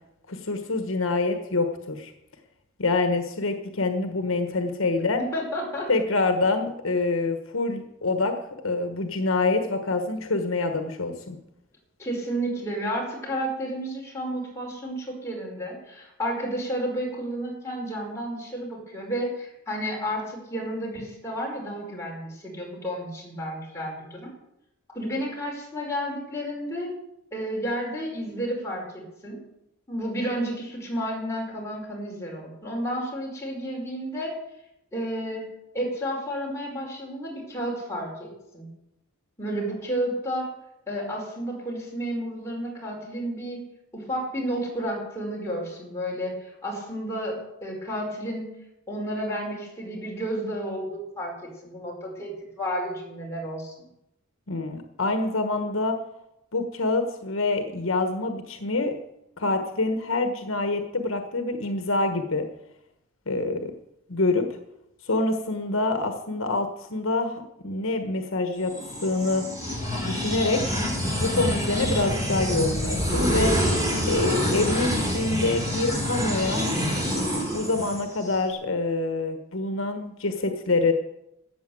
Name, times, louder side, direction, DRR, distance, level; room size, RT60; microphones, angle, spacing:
voice 1, 0.3-2.1 2.8-5.2 5.9-8.3 8.6-11.4 54.5-56.0 56.5-59.0 59.4-62.4 63.3-63.7 64.1-64.5 65.0-68.7 69.0-69.4 70.0-70.6 71.2-73.5 74.0-76.6 77.5-80.9, left 3 dB, 65° left, 6 dB, 1.2 m, -26 dB
voice 2, 5.2-5.9 12.0-24.3 24.9-26.9 27.3-29.4 29.9-34.3 34.9-35.5 35.7-38.7 39.4-40.5 40.9-43.6 43.9-48.5 48.9-53.7, equal, 15° left, -3 dB, 4.6 m, -31 dB
sound 1, 68.7-78.4, equal, 15° right, 4.0 m, -26 dB
14.0 x 8.4 x 7.7 m, 0.86 s
head